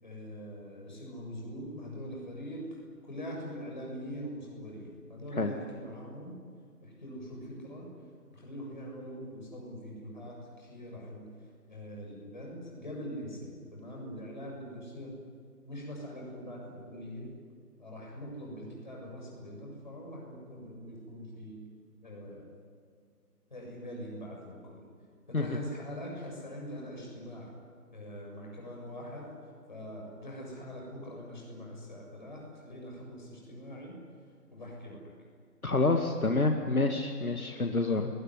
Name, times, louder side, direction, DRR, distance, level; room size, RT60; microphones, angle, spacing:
voice 1, 0.0-2.7 3.0-6.3 6.8-7.9 8.3-11.3 11.7-15.1 15.6-17.3 17.8-21.6 22.0-22.4 23.5-24.9 25.3-27.5 27.9-29.3 29.7-34.0 34.5-35.0, equal, 30° left, -1 dB, 7.3 m, -43 dB
voice 2, 35.6-38.1, left 3 dB, 60° left, 4 dB, 2.2 m, -27 dB
28.0 x 22.0 x 9.8 m, 2.1 s
figure-of-eight pair, 175°, 47 cm